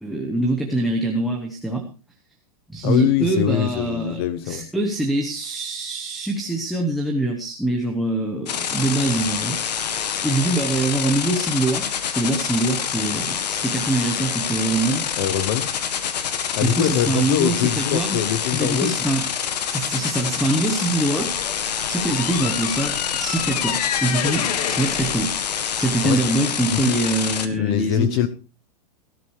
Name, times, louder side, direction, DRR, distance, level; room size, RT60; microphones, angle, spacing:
voice 1, 0.0-1.8 2.7-15.0 16.4-18.2 18.5-19.2 19.7-21.4 21.9-28.3, right 2 dB, ahead, 1.0 m, -24 dB
voice 2, 2.8-4.7 15.2-15.7 16.6-19.0 26.0-26.3 26.7-27.0 27.6-28.3, left 11 dB, 40° left, 0.7 m, -23 dB
sound 1, 8.5-27.5, left 8 dB, 90° left, 1.7 m, -26 dB
sound 2, 21.2-26.4, left 9 dB, 65° left, 1.3 m, -29 dB
17.5 x 13.5 x 3.2 m
supercardioid pair, 160°, 21 cm